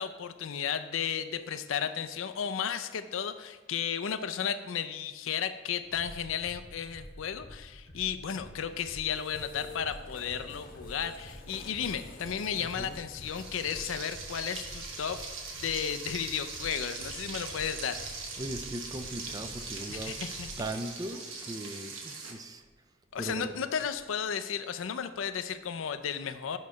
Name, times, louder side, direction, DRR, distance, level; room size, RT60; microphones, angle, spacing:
voice 1, 0.0-15.2 15.5-18.0 19.9-20.5 23.1-26.6, left 8 dB, 75° left, 10 dB, 0.4 m, -34 dB
sound 1, 5.8-20.7, equal, 45° right, 2.0 m, -49 dB
sound 2, 8.2-19.6, left 3 dB, 45° left, 0.9 m, -52 dB
voice 2, 12.6-13.0 18.4-20.2 20.6-22.7 23.2-23.7, right 1 dB, 20° right, 7 dB, 0.4 m, -39 dB
Frying (food), 13.2-22.3, right 4 dB, 75° right, 1.1 m, -41 dB
8.4 x 3.2 x 5.6 m, 1.2 s
head